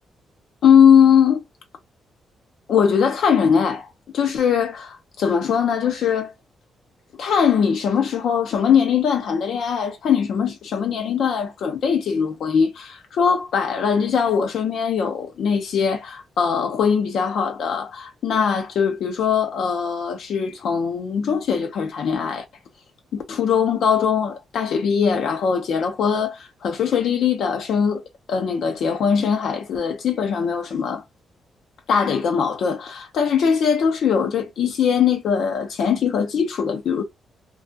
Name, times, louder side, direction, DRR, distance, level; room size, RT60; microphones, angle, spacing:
voice 1, 0.6-1.4 2.7-3.9 4.1-6.3 7.2-22.4 23.1-28.0 28.3-31.0 31.9-37.0, left 7 dB, 70° left, 0.5 m, -21 dB
2.3 x 2.2 x 2.6 m
cardioid pair, 115°, 0 cm